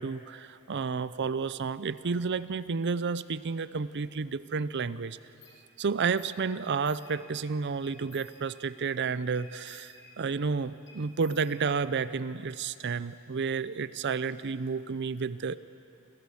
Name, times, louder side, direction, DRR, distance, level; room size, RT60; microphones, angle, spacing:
voice 1, 0.0-5.2 5.8-15.6, right 5 dB, 55° right, 16 dB, 0.6 m, -31 dB
sound 1, 5.4-5.6 6.2-6.4 6.6-7.5 7.8-8.8 9.3-10.5 10.9-12.1, left 6 dB, 55° left, 2.7 m, -55 dB
27.5 x 18.0 x 7.1 m, 2.8 s
head